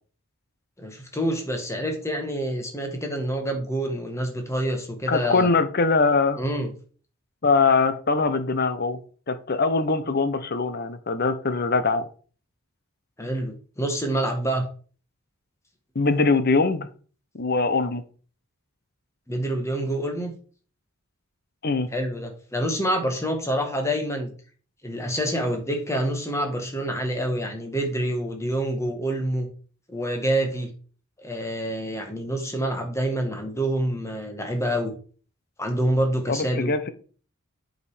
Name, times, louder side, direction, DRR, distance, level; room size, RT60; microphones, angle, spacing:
voice 1, 0.8-5.5 6.4-6.7 13.2-14.7 19.3-20.3 21.9-24.3 24.8-29.5 29.9-30.7 31.2-34.9 35.6-36.7, right 1 dB, 15° left, 4 dB, 1.7 m, -27 dB
voice 2, 5.1-6.4 7.4-9.0 9.3-12.1 15.9-16.9 17.3-18.0 21.6-21.9 36.3-36.9, left 4 dB, 45° left, 11 dB, 0.8 m, -22 dB
8.1 x 5.2 x 5.0 m, 0.41 s
head